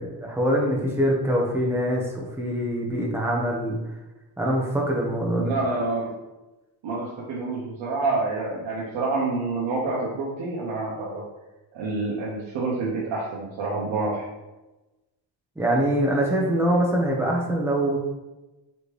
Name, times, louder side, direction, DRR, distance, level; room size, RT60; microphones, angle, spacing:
voice 1, 0.0-3.8 4.4-5.6 15.6-18.0, right 1 dB, 5° right, -2 dB, 1.0 m, -24 dB
voice 2, 5.3-6.1 6.8-11.2 11.7-14.3, right 3 dB, 85° right, -6 dB, 1.1 m, -28 dB
4.6 x 3.2 x 3.2 m, 1.1 s
cardioid pair, 110°, 45 cm